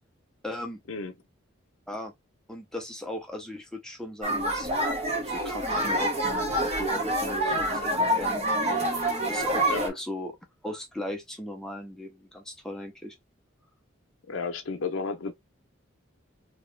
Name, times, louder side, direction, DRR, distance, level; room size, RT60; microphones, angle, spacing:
voice 1, 0.4-0.8 1.9-2.1 2.5-8.4 9.3-10.4 10.6-13.2, left 1 dB, 5° left, 0.6 m, -38 dB
sound 1, 4.2-9.9, right 1 dB, 30° right, 1.1 m, -27 dB
voice 2, 14.3-15.3, left 4 dB, 75° left, 0.6 m, -32 dB
3.0 x 2.9 x 3.2 m
head